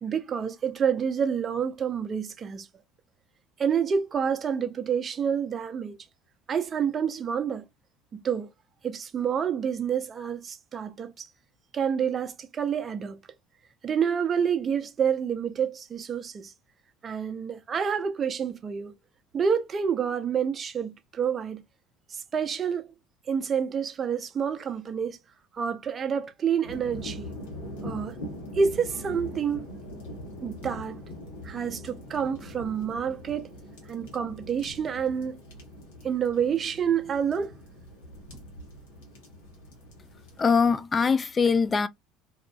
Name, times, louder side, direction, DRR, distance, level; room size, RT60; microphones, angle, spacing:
voice 1, 0.0-2.7 3.6-6.0 6.5-7.7 8.1-8.5 8.8-11.3 11.7-13.2 13.8-16.5 17.0-18.9 19.3-21.6 22.1-22.9 23.3-25.2 25.5-27.3 27.8-28.1 28.5-29.6 30.4-31.0 31.4-33.5 33.9-35.4 36.0-37.6, right 7 dB, 35° right, 0.5 m, -28 dB
sound 1, 26.6-40.4, left 1 dB, 80° left, 1.2 m, -42 dB
voice 2, 40.4-41.9, left 5 dB, 30° left, 0.3 m, -22 dB
2.8 x 2.4 x 2.3 m
hypercardioid pair, 75°, 0 cm